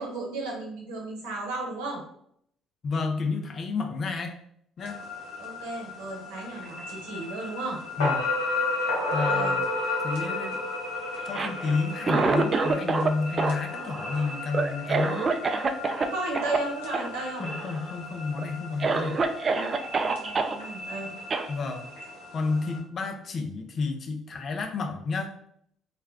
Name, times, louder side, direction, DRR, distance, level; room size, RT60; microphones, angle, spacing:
voice 1, 0.0-2.0 5.4-7.8 9.3-9.6 16.1-17.5 19.9-21.1, right 3 dB, 80° right, -1 dB, 0.8 m, -34 dB
voice 2, 2.8-4.3 4.8-5.0 8.0-8.2 9.1-9.7 10.0-10.6 11.2-15.3 17.4-19.2 21.5-21.9 22.3-25.3, left 4 dB, 50° left, 5 dB, 0.5 m, -30 dB
sound 1, 4.8-22.8, left 2 dB, 85° left, 0.8 m, -34 dB
Cough, 11.2-13.1 13.4-16.1 16.3-16.6 16.9-17.1 17.4-17.9 18.4-18.5 18.8-20.5 21.3-21.5, right 4 dB, 40° right, 0.3 m, -27 dB
2.4 x 2.2 x 3.4 m, 0.69 s
hypercardioid pair, 55°, 0 cm